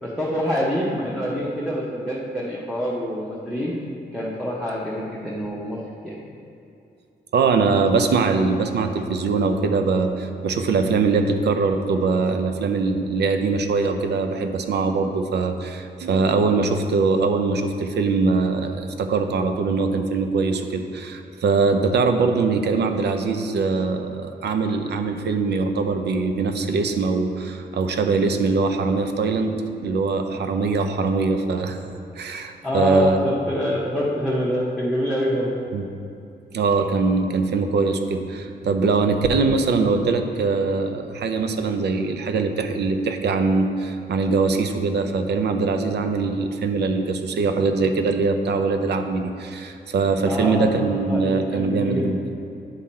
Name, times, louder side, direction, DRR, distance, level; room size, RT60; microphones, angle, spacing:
voice 1, 0.0-3.7 4.1-6.2 32.6-35.6 50.2-52.3, equal, ahead, -7 dB, 0.8 m, -26 dB
voice 2, 7.3-29.6 29.8-31.8 32.2-33.2 35.7-35.8 36.5-52.2, right 4 dB, 70° right, 6 dB, 0.6 m, -22 dB
9.8 x 3.8 x 4.3 m, 2.6 s
wide cardioid pair, 120°, 18 cm